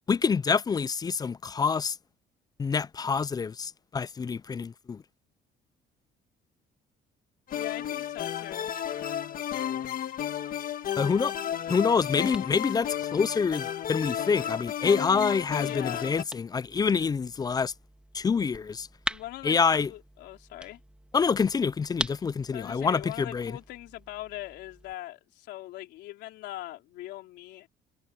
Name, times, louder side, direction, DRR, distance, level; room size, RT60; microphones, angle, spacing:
voice 1, 0.1-2.0 2.6-5.0 11.0-11.3 11.7-17.7 18.1-18.9 19.4-19.9 21.1-23.6, left 5 dB, 25° left, 0.4 m, -26 dB
voice 2, 7.5-8.7 10.9-11.5 15.6-16.2 19.1-20.8 22.5-27.7, left 16 dB, 85° left, 4.0 m, -41 dB
sound 1, 7.5-16.2, left 10 dB, 55° left, 1.6 m, -33 dB
sound 2, 11.5-24.9, right 1 dB, 5° right, 2.4 m, -43 dB
cardioid pair, 110°, 17 cm